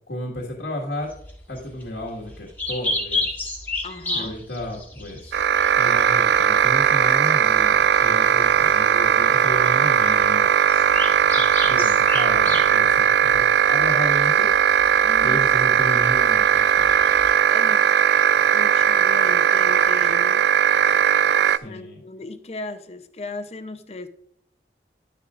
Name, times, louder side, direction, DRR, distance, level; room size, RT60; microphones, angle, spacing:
voice 1, 0.1-1.1 1.5-3.3 4.1-5.4 5.8-10.6 11.3-14.5 15.2-16.9 21.4-22.0, left 1 dB, 85° left, -2 dB, 1.8 m, -32 dB
sound 1, 1.0-17.3, left 2 dB, 10° left, 1.3 m, -33 dB
voice 2, 3.8-4.4 15.0-15.5 17.5-18.0 18.2-20.4 21.6-24.1, left 2 dB, 35° left, 10 dB, 0.7 m, -36 dB
sound 2, 5.3-21.6, right 8 dB, 70° right, 0.3 m, -18 dB
11.0 x 10.0 x 2.5 m, 0.68 s
head